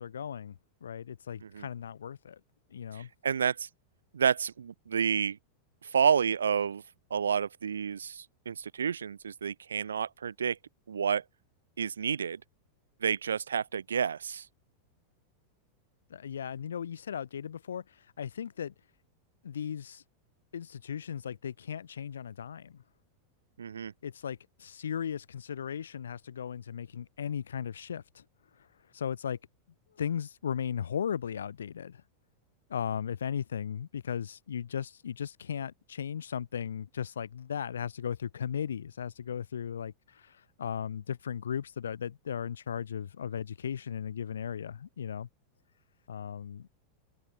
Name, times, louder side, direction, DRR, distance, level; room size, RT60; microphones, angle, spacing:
voice 1, 0.0-2.4 2.7-3.1 16.1-17.8 18.2-18.7 19.4-20.0 20.5-22.8 24.0-28.2 28.9-29.4 30.0-32.0 32.7-45.3 46.1-46.7, left 8 dB, 65° left, 6.1 m, -36 dB
voice 2, 2.9-3.7 4.1-5.4 5.8-6.8 7.1-10.6 10.9-11.2 11.8-12.4 13.0-14.5 23.6-23.9, right 7 dB, 70° right, 2.7 m, -29 dB
figure-of-eight pair, 90°, 0 cm